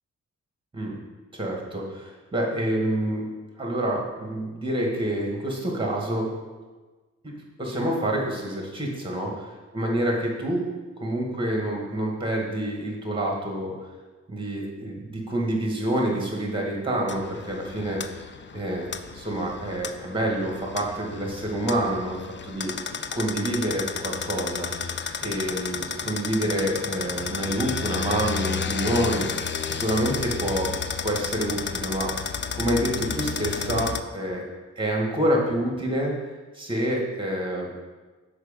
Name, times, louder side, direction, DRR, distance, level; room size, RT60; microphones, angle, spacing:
voice 1, 1.3-3.3 3.6-6.3 7.2-7.3 7.6-9.3 9.7-10.7 11.0-13.8 14.3-18.3 18.5-22.8 23.1-24.7 25.2-29.3 29.6-30.7 31.0-32.1 32.6-34.4 34.8-36.1 36.5-37.7, right 1 dB, 15° right, -1 dB, 1.9 m, -27 dB
sound 1, 17.1-34.0, left 6 dB, 40° left, 0.4 m, -32 dB
6.5 x 4.8 x 5.2 m, 1.3 s
cardioid pair, 80°, 30 cm